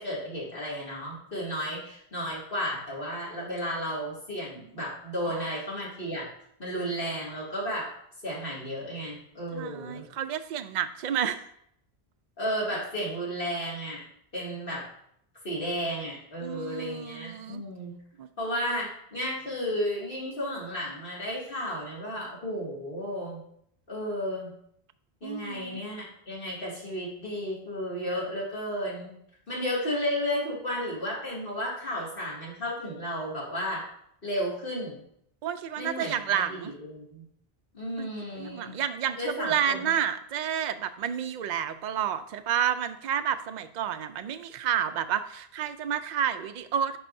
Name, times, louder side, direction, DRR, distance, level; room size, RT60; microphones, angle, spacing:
voice 1, 0.0-6.2 6.6-7.9 8.2-10.1 12.4-14.0 14.3-14.8 15.4-17.9 18.4-23.4 23.9-24.5 25.2-29.1 29.5-33.8 34.2-35.0 35.8-37.2 37.7-38.7 39.2-39.9, equal, 60° left, -6 dB, 2.6 m, -33 dB
voice 2, 9.5-11.4 16.4-17.6 18.2-18.3 25.2-25.8 35.4-36.7 38.0-38.1 38.4-47.0, right 9 dB, 55° right, 9 dB, 0.5 m, -30 dB
9.9 x 5.4 x 2.6 m, 0.70 s
omnidirectional pair, 1.0 m